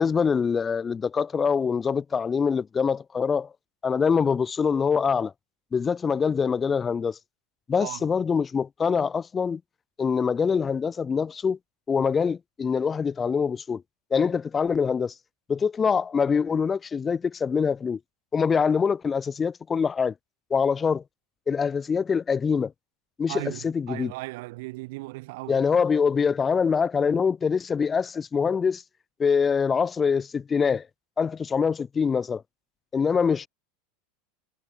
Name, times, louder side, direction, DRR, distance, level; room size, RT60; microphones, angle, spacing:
voice 1, 0.0-3.5 3.8-5.3 5.7-7.2 7.7-9.6 10.0-11.6 11.9-13.8 14.1-15.1 15.5-18.0 18.3-20.1 20.5-21.0 21.5-22.7 23.2-24.1 25.5-28.8 29.2-30.9 31.2-32.4 32.9-33.5, left 6 dB, 20° left, 0.5 m, -24 dB
voice 2, 7.8-8.1 23.3-25.6, right 23 dB, 65° right, 3.2 m, -37 dB
supercardioid pair, 140°, 0 cm